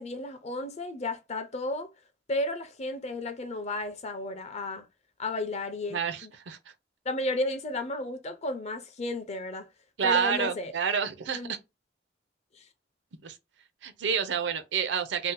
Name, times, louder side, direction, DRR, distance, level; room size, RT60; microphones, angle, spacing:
voice 1, 0.0-1.9 2.3-4.9 5.2-6.3 7.0-9.7 10.0-10.7 11.3-11.5 12.5-12.7, left 2 dB, 40° left, 0.5 m, -33 dB
voice 2, 5.9-6.6 10.0-11.6 13.2-13.4 13.8-15.3, right 6 dB, 75° right, 0.5 m, -29 dB
2.7 x 2.1 x 3.8 m
head